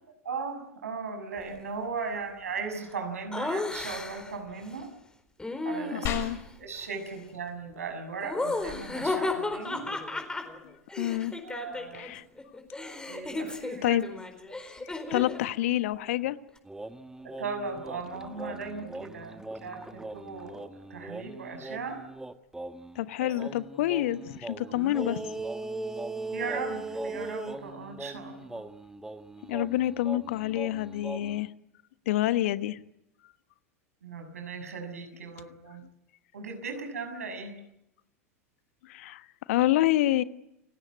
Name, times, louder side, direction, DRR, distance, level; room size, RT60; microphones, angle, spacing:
voice 1, 0.2-4.9 5.6-6.3 6.6-9.9 11.4-12.1 13.1-14.0 17.2-22.0 23.2-23.5 26.3-28.6 34.0-35.8 36.3-37.5, right 4 dB, 75° right, 6.4 m, -37 dB
Laughter, 3.3-4.4 5.4-6.4 8.2-12.1 12.4-15.5, left 2 dB, 10° left, 4.2 m, -34 dB
voice 2, 5.9-6.4 11.0-11.3 12.0-12.2 13.8-14.1 15.1-16.4 22.9-25.2 29.4-31.5 32.1-32.8 38.8-40.2, left 14 dB, 60° left, 1.2 m, -27 dB
sound 1, 6.1-16.1, left 6 dB, 45° left, 6.6 m, -45 dB
sound 2, 16.6-23.0 23.4-31.4, right 2 dB, 5° right, 1.4 m, -39 dB
29.5 x 17.5 x 9.7 m
figure-of-eight pair, 85°, 8 cm